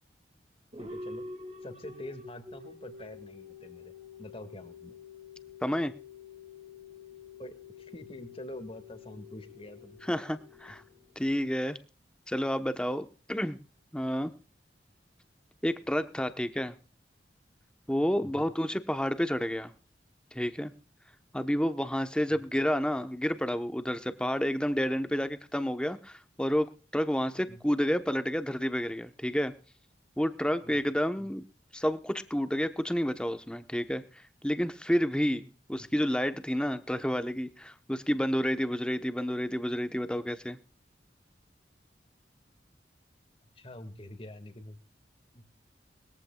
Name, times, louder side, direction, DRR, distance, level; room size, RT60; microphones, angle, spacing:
sound 1, 0.7-11.4, left 3 dB, 35° right, 2.5 m, -47 dB
voice 1, 0.8-1.3 1.6-3.9 4.2-5.0 7.4-10.0 10.7-10.8 18.2-18.5 22.3-22.4 27.4-27.6 30.6-30.8 31.2-31.3 35.8-35.9 43.6-44.8 45.3-45.4, left 1 dB, 35° left, 9 dB, 2.0 m, -45 dB
voice 2, 5.6-5.9 10.0-10.8 11.2-11.8 12.3-13.6 13.9-14.3 15.6-16.7 17.9-19.7 20.3-20.7 21.3-29.5 30.2-31.4 31.7-34.0 34.4-40.6, equal, 5° left, 10 dB, 1.0 m, -30 dB
21.5 x 14.5 x 2.3 m, 0.37 s
head